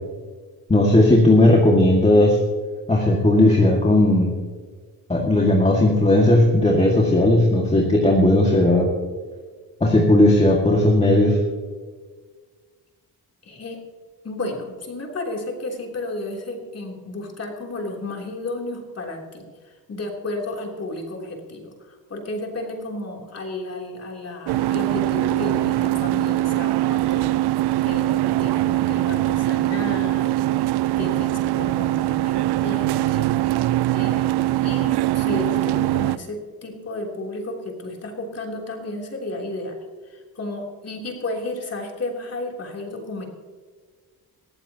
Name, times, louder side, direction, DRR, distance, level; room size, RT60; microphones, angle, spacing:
voice 1, 0.7-2.4 2.9-4.3 5.1-8.9 9.8-11.4, left 1 dB, 15° left, -2 dB, 2.0 m, -16 dB
voice 2, 13.4-13.8 14.2-27.3 27.8-30.4 31.0-33.3 33.9-39.8 40.0-43.3, left 2 dB, 40° left, 0 dB, 3.3 m, -32 dB
sound 1, 24.5-36.2, right 15 dB, 85° right, 0.5 m, -22 dB
20.0 x 14.5 x 2.9 m, 1.5 s
cardioid pair, 135°, 39 cm